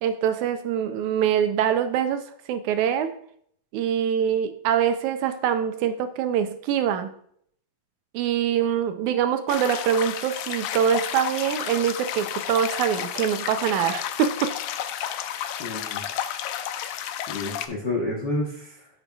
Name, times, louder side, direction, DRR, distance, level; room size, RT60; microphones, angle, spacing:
voice 1, 0.0-2.2 2.5-3.1 3.7-7.1 8.1-14.5, right 9 dB, 80° right, 9 dB, 2.0 m, -24 dB
sound 1, 9.5-17.7, left 10 dB, 80° left, 2.0 m, -31 dB
voice 2, 15.6-16.0 17.3-18.9, left 2 dB, 65° left, -2 dB, 1.0 m, -29 dB
9.7 x 8.1 x 2.3 m, 0.64 s
omnidirectional pair, 3.6 m